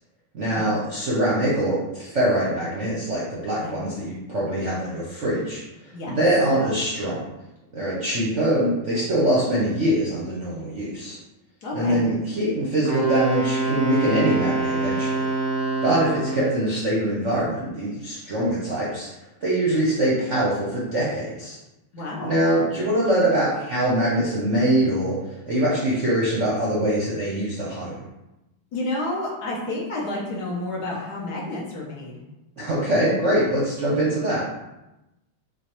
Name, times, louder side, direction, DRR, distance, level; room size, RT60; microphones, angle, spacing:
voice 1, 0.3-5.6 6.1-7.2 7.7-11.2 11.7-15.2 15.8-19.1 19.4-21.6 22.2-28.0 32.6-34.5, right 1 dB, 55° right, -6 dB, 0.8 m, -23 dB
voice 2, 11.6-12.0 15.9-16.1 21.9-22.3 28.7-32.2, left 2 dB, 60° left, -4 dB, 1.2 m, -30 dB
Wind instrument woodwind instrument, 12.8-16.6, right 3 dB, 15° left, 0.9 m, -25 dB
6.8 x 2.4 x 3.0 m, 0.95 s
omnidirectional pair, 2.3 m